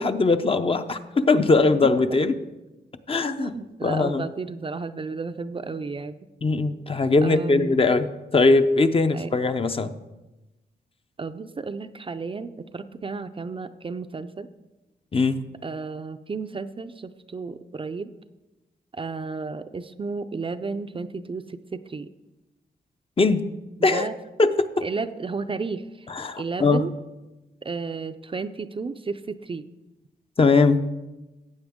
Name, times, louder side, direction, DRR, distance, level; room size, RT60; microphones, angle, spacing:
voice 1, 0.0-2.3 3.1-3.5 3.8-4.2 6.4-8.1 8.3-9.9 15.1-15.4 23.2-23.4 23.8-24.1 24.4-24.7 26.1-26.8 30.4-30.8, left 3 dB, 30° left, 9 dB, 0.6 m, -20 dB
voice 2, 3.4-6.2 7.2-7.8 9.1-9.3 11.2-14.5 15.6-18.1 18.9-22.1 23.8-24.2 24.8-26.1 26.4-26.9 27.6-29.6, right 4 dB, 30° right, 9 dB, 0.5 m, -32 dB
15.0 x 8.5 x 3.6 m, 1.1 s
wide cardioid pair, 110°, 18 cm